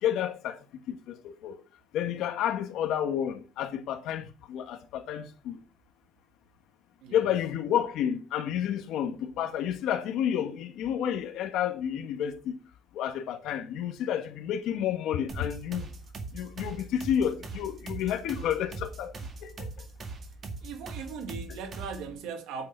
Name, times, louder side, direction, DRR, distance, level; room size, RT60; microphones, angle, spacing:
voice 1, 0.0-1.6 1.9-5.6 7.1-12.6 12.9-15.9 16.3-19.1 19.4-19.7, left 9 dB, 60° left, 1.6 m, -30 dB
voice 2, 7.0-7.3 20.6-22.7, right 5 dB, 75° right, 2.1 m, -39 dB
sound 1, 15.3-22.1, right 3 dB, 30° right, 2.1 m, -41 dB
9.4 x 8.6 x 4.6 m
cardioid pair, 180°, 0 cm